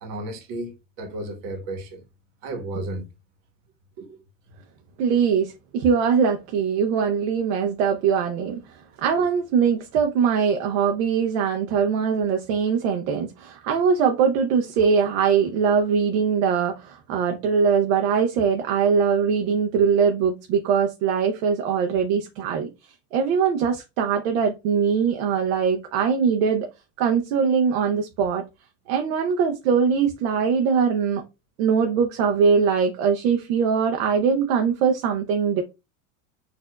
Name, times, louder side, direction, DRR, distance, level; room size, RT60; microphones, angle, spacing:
voice 1, 0.0-0.7 1.0-2.0 2.4-3.1 4.0-4.2 9.1-9.3, right 2 dB, 55° right, 1.3 m, -33 dB
voice 2, 5.0-8.6 9.0-22.7 23.1-26.7 27.0-28.4 28.9-31.2 31.6-35.6, right 6 dB, 70° right, 0.7 m, -22 dB
4.3 x 2.6 x 2.2 m
supercardioid pair, 140°, 40 cm